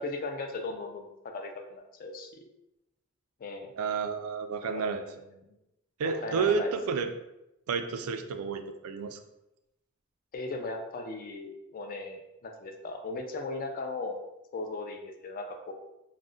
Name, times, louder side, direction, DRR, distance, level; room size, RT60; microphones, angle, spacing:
voice 1, 0.0-2.4 3.4-3.7 4.6-5.4 6.0-6.7 10.3-14.2 14.5-15.7, left 3 dB, 40° left, 4 dB, 0.4 m, -38 dB
voice 2, 3.8-5.0 6.0-7.1 7.7-9.2, right 5 dB, 80° right, 7 dB, 0.3 m, -30 dB
2.3 x 2.0 x 3.7 m, 0.90 s
head